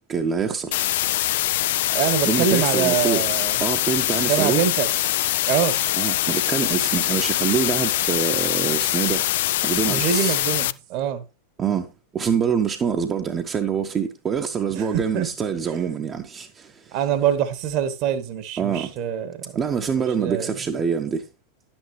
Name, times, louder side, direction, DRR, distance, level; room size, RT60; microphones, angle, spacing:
voice 1, 0.1-0.9 2.3-4.6 6.0-9.3 9.6-10.4 11.6-11.9 12.1-17.0 18.6-18.9 19.5-21.3, right 7 dB, 25° right, 1.0 m, -25 dB
sound 1, 0.7-10.7, left 14 dB, 55° left, 0.4 m, -23 dB
voice 2, 1.9-3.6 4.3-4.9 5.5-5.8 9.9-11.2 14.8-14.9 15.1-15.3 16.9-19.6 19.9-20.5, right 9 dB, 45° right, 1.4 m, -24 dB
11.0 x 8.9 x 3.3 m
figure-of-eight pair, 90°, 0 cm